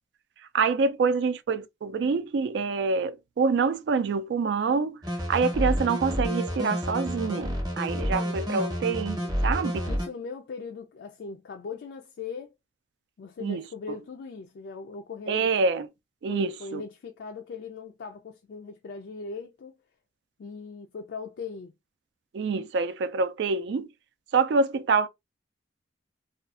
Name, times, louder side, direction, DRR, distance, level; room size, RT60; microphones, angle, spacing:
voice 1, 0.5-9.7 13.4-13.6 15.3-15.9 16.2-16.8 22.3-23.9 24.3-25.1, right 4 dB, 65° right, 0.3 m, -26 dB
sound 1, 5.0-10.1, equal, 20° right, 0.7 m, -29 dB
voice 2, 7.9-8.4 9.2-9.3 9.8-12.6 13.2-15.5 16.3-19.8 20.4-21.7, left 4 dB, 65° left, 0.3 m, -39 dB
2.4 x 2.3 x 2.4 m
head